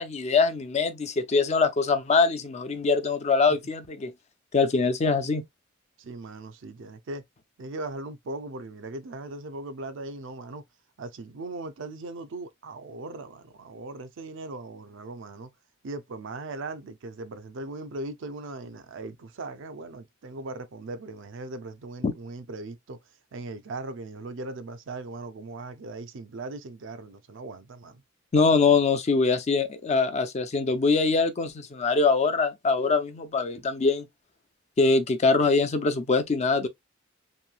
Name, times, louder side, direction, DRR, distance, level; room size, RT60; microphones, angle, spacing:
voice 1, 0.0-4.1 4.5-5.4 22.0-22.1 28.3-34.1 34.8-36.7, left 4 dB, 35° left, 0.4 m, -23 dB
voice 2, 6.0-7.2 7.6-10.6 11.0-15.5 15.8-23.0 23.3-28.0, right 2 dB, 65° right, 0.5 m, -39 dB
3.1 x 2.6 x 2.2 m
head